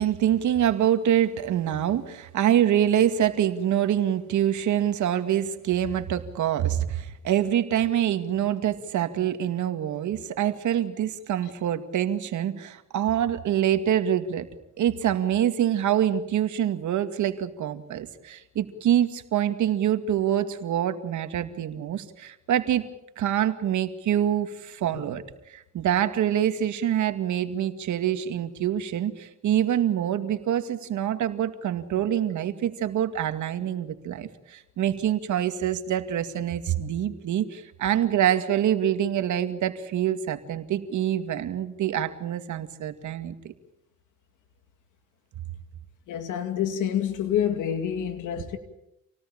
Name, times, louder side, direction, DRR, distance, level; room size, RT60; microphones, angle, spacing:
voice 1, 0.0-14.5 14.8-22.9 23.2-43.5, right 10 dB, 75° right, 9 dB, 2.2 m, -25 dB
voice 2, 46.1-48.6, left 9 dB, 90° left, 7 dB, 2.5 m, -27 dB
28.0 x 19.0 x 8.8 m, 0.87 s
cardioid pair, 90°, 30 cm